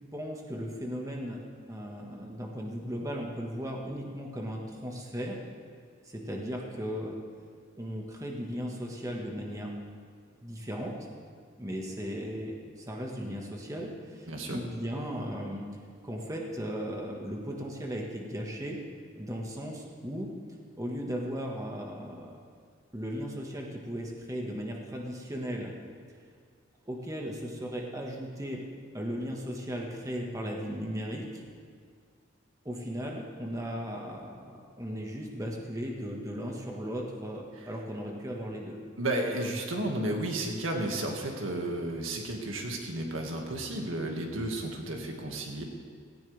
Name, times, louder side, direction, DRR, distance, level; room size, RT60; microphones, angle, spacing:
voice 1, 0.1-5.4 6.0-7.2 7.8-9.7 10.4-10.9 11.6-15.6 16.0-18.8 19.2-20.3 20.8-22.4 22.9-25.7 26.8-28.6 28.9-31.4 32.6-38.8, equal, 15° right, -1 dB, 1.6 m, -36 dB
voice 2, 14.3-14.6 37.6-37.7 39.0-45.6, right 1 dB, 85° right, 1 dB, 2.0 m, -33 dB
17.5 x 16.5 x 3.5 m, 2.1 s
head